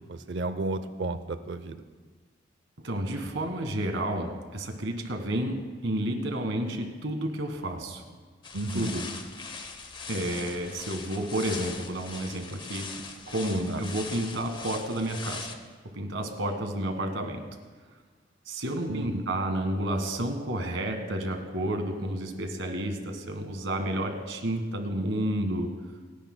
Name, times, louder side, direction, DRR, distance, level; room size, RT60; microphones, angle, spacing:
voice 1, 0.1-1.8 8.5-8.9 13.7-13.8 18.9-19.3, right 2 dB, 65° right, 11 dB, 0.6 m, -33 dB
voice 2, 2.8-5.6 5.8-8.1 8.7-9.0 10.1-12.9 13.3-15.5 15.9-17.4 18.5-25.7, right 1 dB, 85° right, 5 dB, 1.6 m, -31 dB
sound 1, 8.4-15.6, left 4 dB, 25° left, 0.8 m, -41 dB
29.0 x 10.0 x 2.2 m, 1.5 s
head